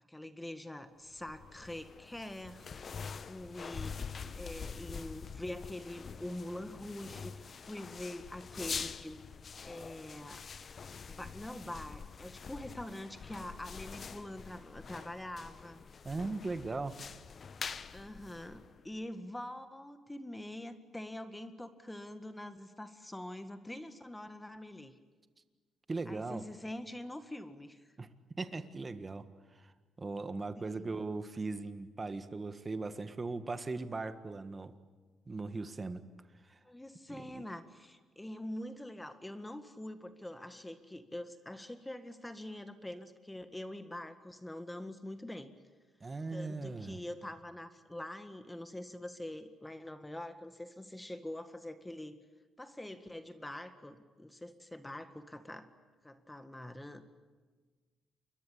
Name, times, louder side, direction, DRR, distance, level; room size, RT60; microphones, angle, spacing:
voice 1, 0.1-3.0 3.3-9.2 9.6-10.4 11.1-15.8 17.9-24.9 26.1-27.9 30.6-30.9 36.6-45.5 46.3-52.2 52.6-55.7 56.0-57.0, left 1 dB, 10° left, 9 dB, 1.8 m, -45 dB
sound 1, 1.1-19.0, left 6 dB, 45° left, 1.1 m, -45 dB
voice 2, 16.0-17.0 25.9-26.4 28.0-28.1 28.4-29.3 29.5-29.7 30.0-34.7 35.3-36.0 36.5-36.6 37.1-37.4 46.0-47.0, right 3 dB, 25° right, 10 dB, 1.6 m, -39 dB
29.0 x 23.0 x 8.6 m, 1.4 s
cardioid pair, 90°, 0 cm